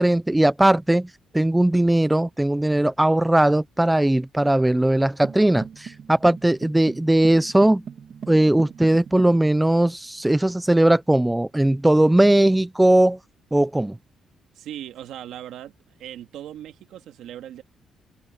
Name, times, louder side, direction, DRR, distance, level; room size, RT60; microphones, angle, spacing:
voice 1, 0.0-7.8 8.3-13.2 13.5-14.0, right 1 dB, 10° right, 0.6 m, -19 dB
sound 1, 5.2-9.4, right 7 dB, 55° right, 2.8 m, -39 dB
voice 2, 14.5-15.7 16.0-17.6, right 11 dB, 80° right, 2.1 m, -38 dB
cardioid pair, 90°, 0 cm